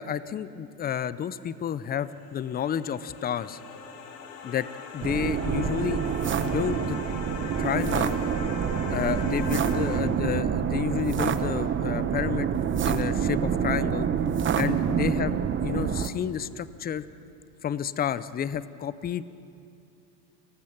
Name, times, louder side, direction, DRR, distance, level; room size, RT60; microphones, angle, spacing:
voice 1, 0.0-3.6 4.4-4.7 4.9-6.0 6.4-7.0 7.6-8.2 8.9-12.5 12.8-14.1 14.6-15.3 15.6-17.1 17.6-19.2, left 9 dB, 20° left, 16 dB, 0.5 m, -30 dB
sound 1, 1.6-10.0, left 5 dB, 75° left, 2.8 m, -41 dB
sound 2, 5.0-16.1, right 8 dB, 25° right, 0.9 m, -27 dB
28.5 x 15.5 x 6.0 m, 2.5 s
hypercardioid pair, 100°, 50 cm